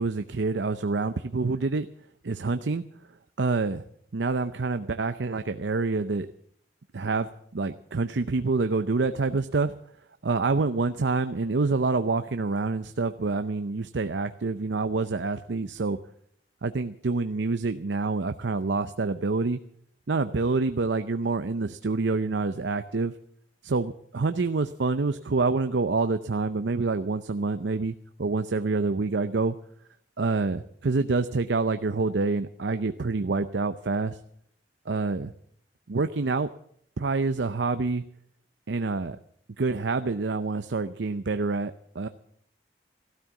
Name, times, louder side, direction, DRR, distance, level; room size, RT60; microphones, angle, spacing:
voice 1, 0.0-1.9 2.2-2.8 3.4-3.8 4.1-6.3 6.9-7.3 7.5-9.8 10.2-16.0 16.6-19.6 20.1-23.1 23.6-29.6 30.2-34.2 34.9-35.3 35.9-36.5 37.0-38.0 38.7-39.2 39.6-42.1, right 3 dB, 90° right, 10 dB, 0.6 m, -27 dB
15.5 x 13.0 x 7.1 m, 0.67 s
head